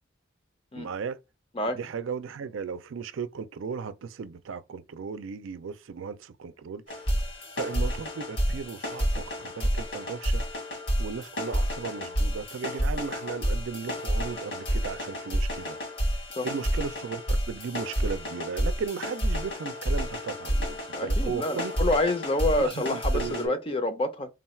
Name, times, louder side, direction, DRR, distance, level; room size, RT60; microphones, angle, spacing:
voice 1, 0.7-1.2 1.7-6.8 7.6-10.4 11.0-15.8 16.1-21.7 22.7-23.8, right 5 dB, 80° right, 0.4 m, -36 dB
sound 1, 6.9-23.5, equal, 75° left, 2.3 m, -29 dB
voice 2, 20.9-24.3, left 2 dB, 30° left, 0.5 m, -27 dB
3.8 x 2.3 x 4.2 m
head